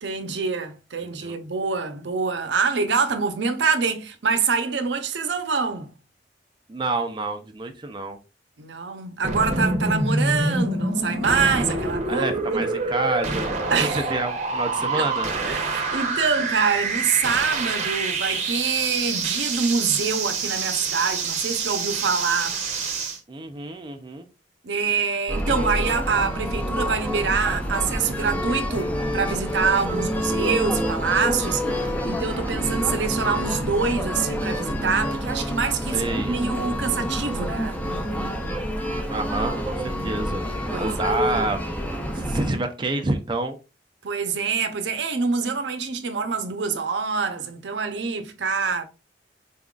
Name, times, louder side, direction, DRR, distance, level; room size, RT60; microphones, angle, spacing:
voice 1, 0.0-5.9 8.6-12.7 13.7-14.1 14.9-15.1 15.4-22.6 24.6-37.8 40.7-41.1 44.0-48.8, right 5 dB, 80° right, 0.7 m, -25 dB
voice 2, 6.7-8.2 12.1-13.4 13.8-15.3 23.3-24.3 35.9-36.4 39.1-41.6 42.1-43.6, right 2 dB, 25° right, 0.4 m, -28 dB
sound 1, 9.2-23.2, right 3 dB, 40° right, 0.8 m, -26 dB
sound 2, 25.3-42.5, equal, 10° left, 0.6 m, -27 dB
4.1 x 3.7 x 2.4 m
head